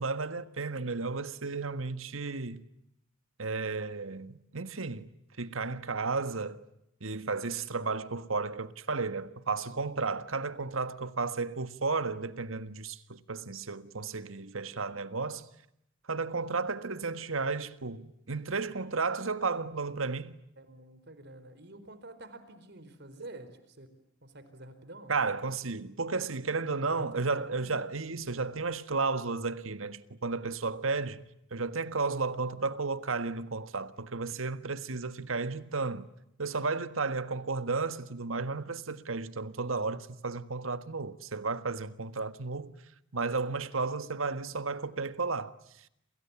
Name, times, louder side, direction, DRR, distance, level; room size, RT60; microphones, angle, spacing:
voice 1, 0.0-2.6 3.4-5.1 5.4-6.6 7.0-15.5 16.1-20.4 25.1-31.2 31.5-36.1 36.4-42.8 43.1-45.9, right 4 dB, 85° right, 1.6 m, -33 dB
voice 2, 20.6-23.9 24.2-25.1 26.8-27.8, right 1 dB, 55° right, 4.5 m, -48 dB
30.0 x 27.5 x 7.2 m
head